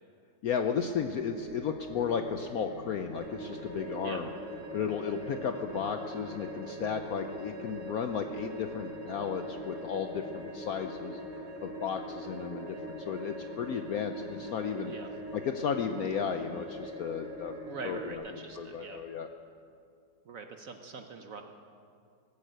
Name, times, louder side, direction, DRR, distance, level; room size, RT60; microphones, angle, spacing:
voice 1, 0.4-4.3 4.7-11.2 11.6-14.9 15.3-17.5 17.8-18.2 18.6-19.3, left 7 dB, 70° left, 7 dB, 0.9 m, -34 dB
sound 1, 0.7-19.0, equal, 40° left, 5.9 m, -48 dB
sound 2, 3.1-18.1, equal, 80° right, 2.2 m, -43 dB
voice 2, 17.7-19.0 20.2-21.4, right 4 dB, 55° right, 5 dB, 1.0 m, -43 dB
19.0 x 8.4 x 8.0 m, 2.4 s
omnidirectional pair, 2.1 m